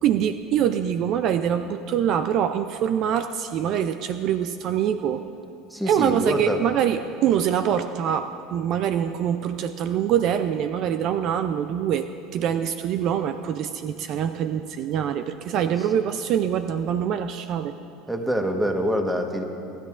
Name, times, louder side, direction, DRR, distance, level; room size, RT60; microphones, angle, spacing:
voice 1, 0.0-5.2 5.8-12.1 12.3-17.7, right 9 dB, 55° right, 9 dB, 0.4 m, -24 dB
voice 2, 5.7-6.6 15.5-15.7 18.1-19.4, equal, 5° right, 4 dB, 1.2 m, -25 dB
26.0 x 10.5 x 2.5 m, 2.7 s
supercardioid pair, 110°, 0 cm